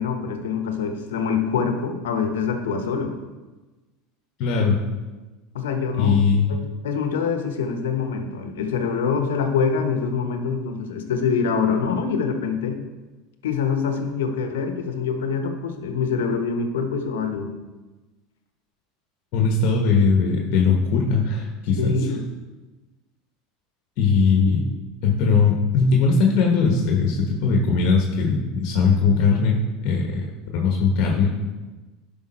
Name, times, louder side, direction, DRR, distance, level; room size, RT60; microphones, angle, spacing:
voice 1, 0.0-3.1 5.5-6.2 6.5-12.8 13.4-17.5 21.8-22.2, left 6 dB, 85° left, 6 dB, 1.1 m, -25 dB
voice 2, 4.4-4.8 6.0-6.5 19.3-22.1 24.0-24.7 25.0-30.3 30.5-31.3, left 5 dB, 60° left, 1 dB, 1.3 m, -20 dB
10.5 x 5.8 x 4.3 m, 1.2 s
supercardioid pair, 105°, 0 cm